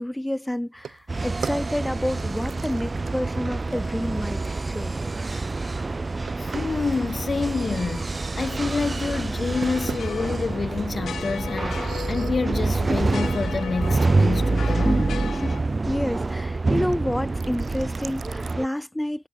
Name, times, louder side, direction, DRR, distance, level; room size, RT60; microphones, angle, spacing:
voice 1, 0.0-4.9 15.3-15.6 15.9-19.3, left 1 dB, 5° left, 1.2 m, -29 dB
sound 1, 0.7-18.6, right 7 dB, 55° right, 5.9 m, -44 dB
sound 2, 1.1-18.7, right 3 dB, 25° right, 1.7 m, -26 dB
voice 2, 6.4-15.2, left 4 dB, 35° left, 0.9 m, -28 dB
sound 3, 9.5-15.6, left 8 dB, 70° left, 2.4 m, -37 dB
cardioid pair, 110°, 0 cm